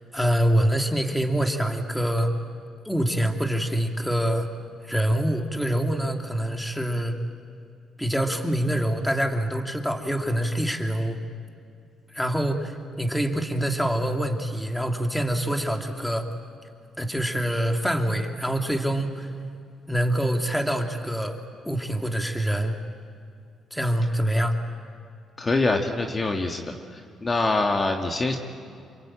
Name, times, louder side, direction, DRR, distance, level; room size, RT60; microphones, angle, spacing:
voice 1, 0.1-2.3 2.8-4.5 4.8-7.2 8.0-11.2 12.1-16.3 17.0-19.3 19.9-21.4 21.6-22.8 23.7-24.6, right 1 dB, 5° left, 4 dB, 2.7 m, -25 dB
voice 2, 25.4-28.4, left 2 dB, 30° left, 3 dB, 2.0 m, -25 dB
28.0 x 24.0 x 8.9 m, 2.4 s
cardioid pair, 90°, 0 cm